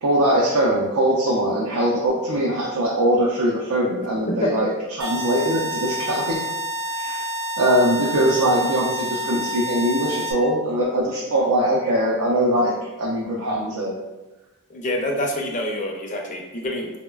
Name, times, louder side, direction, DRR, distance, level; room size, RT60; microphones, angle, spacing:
voice 1, 0.0-6.4 6.9-7.2 7.6-14.0, right 1 dB, 75° right, -4 dB, 0.5 m, -21 dB
sound 1, 5.0-10.3, equal, 20° right, 0.4 m, -28 dB
voice 2, 14.7-16.9, left 1 dB, 35° left, 1 dB, 0.4 m, -26 dB
3.8 x 2.1 x 2.2 m, 1.0 s
head